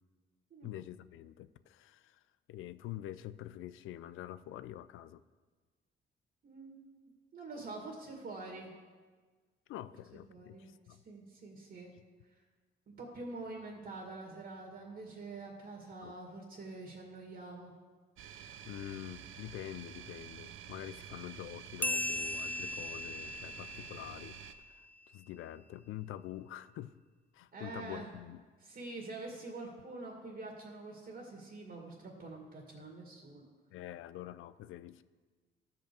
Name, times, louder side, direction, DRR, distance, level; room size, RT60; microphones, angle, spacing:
voice 1, 0.6-2.2 2.5-5.2 9.7-11.0 16.0-16.1 18.7-24.4 24.7-26.9 27.3-28.4 33.7-35.0, left 13 dB, 85° left, 15 dB, 0.5 m, -46 dB
voice 2, 6.4-6.8 7.3-8.7 10.3-10.7 11.0-11.9 12.3-12.4 12.9-17.7 27.5-28.1 28.6-33.5, right 3 dB, 50° right, -1 dB, 2.3 m, -46 dB
sound 1, 18.2-24.5, right 9 dB, 80° right, 0.7 m, -49 dB
sound 2, 21.8-24.9, left 2 dB, 10° left, 0.4 m, -38 dB
13.5 x 5.2 x 6.9 m, 1.4 s
cardioid pair, 80°, 20 cm